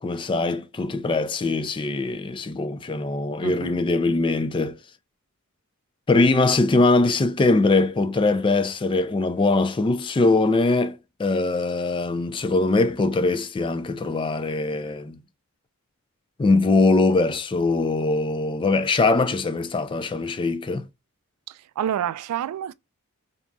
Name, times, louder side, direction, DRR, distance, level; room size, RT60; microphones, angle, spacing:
voice 1, 0.0-4.8 6.1-15.2 16.4-20.8, left 3 dB, 20° left, 0.3 m, -22 dB
voice 2, 3.4-3.8 21.5-22.7, right 10 dB, 90° right, 0.3 m, -28 dB
3.8 x 2.7 x 2.2 m
head